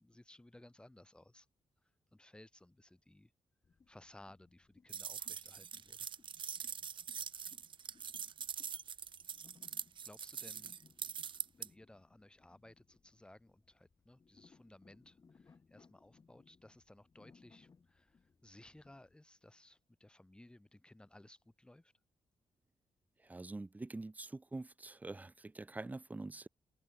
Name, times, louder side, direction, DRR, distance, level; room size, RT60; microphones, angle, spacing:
voice 1, 0.0-1.5 2.1-3.3 3.9-6.1 10.0-10.7 11.6-21.9, left 1 dB, 10° left, 5.9 m, -60 dB
sound 1, 3.6-19.1, left 5 dB, 30° left, 7.3 m, -68 dB
sound 2, 4.9-11.7, right 7 dB, 45° right, 1.6 m, -44 dB
voice 2, 23.2-26.5, right 2 dB, 15° right, 1.0 m, -45 dB
wide cardioid pair, 170°, 12 cm